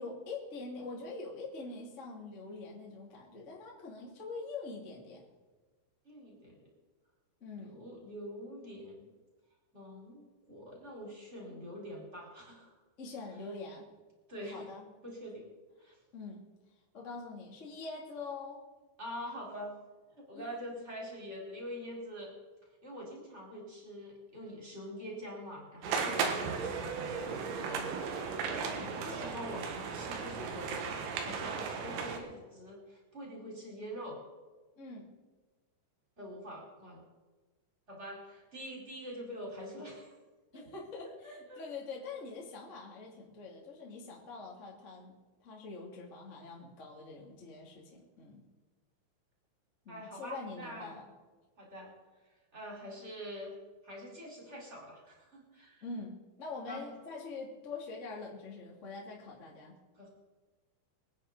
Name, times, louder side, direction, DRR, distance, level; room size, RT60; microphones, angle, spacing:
voice 1, 0.0-5.3 7.4-7.8 11.5-11.6 13.0-13.9 14.4-14.9 16.1-16.4 16.9-18.6 20.3-20.5 26.0-26.2 28.7-29.2 34.8-35.1 40.5-48.4 49.8-51.0 55.8-59.7, left 3 dB, 25° left, -3 dB, 1.7 m, -44 dB
voice 2, 6.0-6.6 7.5-9.0 9.7-12.7 14.3-14.7 15.0-15.5 15.8-16.0 19.0-19.7 20.2-22.3 22.8-30.9 31.2-34.2 36.2-37.1 37.9-40.1 40.5-40.7 41.2-41.6 49.9-51.0 51.6-51.9 52.5-53.5 53.8-55.8 56.7-56.9 59.9-60.1, equal, 15° right, -2 dB, 3.7 m, -45 dB
sound 1, 25.8-32.2, right 5 dB, 80° right, 4.2 m, -36 dB
25.0 x 9.7 x 4.1 m, 1.3 s
omnidirectional pair, 5.9 m